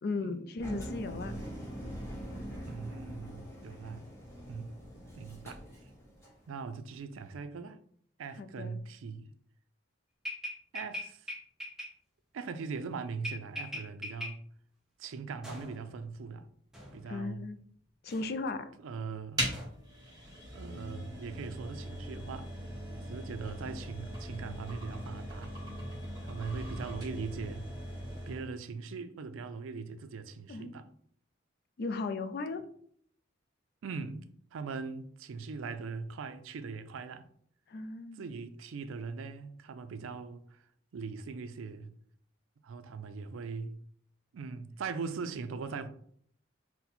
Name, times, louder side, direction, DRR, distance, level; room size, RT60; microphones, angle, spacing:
voice 1, 0.0-1.4 8.4-8.8 17.1-17.6 18.0-18.7 30.5-30.8 31.8-32.6 37.7-38.3, left 3 dB, 50° left, 0.3 m, -36 dB
Engine, 0.6-6.4, equal, 15° left, 1.0 m, -43 dB
voice 2, 1.0-1.5 2.7-4.0 4.5-4.7 5.2-5.6 6.5-7.8 8.2-9.3 10.7-11.3 12.3-14.4 15.0-16.5 16.9-17.5 18.8-19.5 20.5-22.5 23.1-25.5 26.2-27.7 28.3-30.9 33.8-37.3 38.2-40.6 40.9-41.9 42.6-43.8 44.3-45.9, right 5 dB, 80° right, 0.4 m, -40 dB
sound 1, 10.3-11.9 13.2-14.3 15.4-16.2 16.7-17.2 18.1-18.4 19.5-19.7, left 1 dB, ahead, 0.7 m, -40 dB
sound 2, 19.4-28.5, equal, 20° right, 1.3 m, -40 dB
4.0 x 2.1 x 4.3 m
head